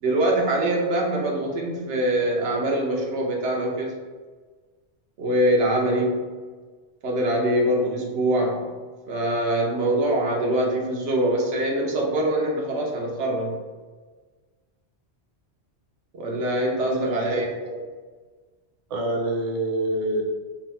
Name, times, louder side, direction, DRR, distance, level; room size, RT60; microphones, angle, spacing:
voice 1, 0.0-3.9 5.2-6.2 7.0-8.7 9.1-13.6 16.1-17.8, right 1 dB, 90° right, -1 dB, 1.1 m, -23 dB
voice 2, 16.9-17.4 18.9-20.3, right 1 dB, 45° right, 2 dB, 0.5 m, -26 dB
3.9 x 2.1 x 4.3 m, 1.4 s
omnidirectional pair, 1.1 m